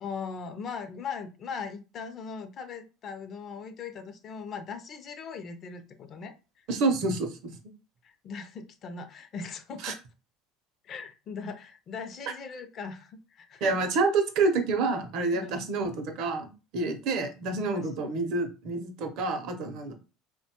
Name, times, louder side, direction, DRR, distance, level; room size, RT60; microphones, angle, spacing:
voice 1, 0.0-6.3 8.0-10.0 10.8-13.7 15.3-15.6 17.7-17.9, left 5 dB, 40° left, 8 dB, 0.4 m, -39 dB
voice 2, 6.7-7.4 9.8-9.9 13.6-19.9, right 3 dB, 60° right, 7 dB, 0.6 m, -28 dB
2.8 x 2.1 x 2.9 m, 0.31 s
cardioid pair, 135°, 0 cm